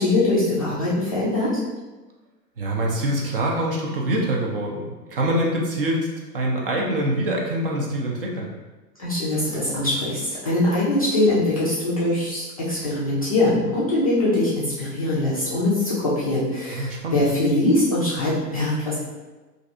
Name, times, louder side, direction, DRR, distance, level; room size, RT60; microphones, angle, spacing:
voice 1, 0.0-1.5 9.0-18.9, left 1 dB, 25° left, -10 dB, 0.3 m, -22 dB
voice 2, 2.6-6.0 6.3-8.5 16.7-17.2, right 1 dB, 40° right, -1 dB, 0.4 m, -24 dB
3.1 x 2.5 x 2.5 m, 1.2 s
figure-of-eight pair, 105°, 48 cm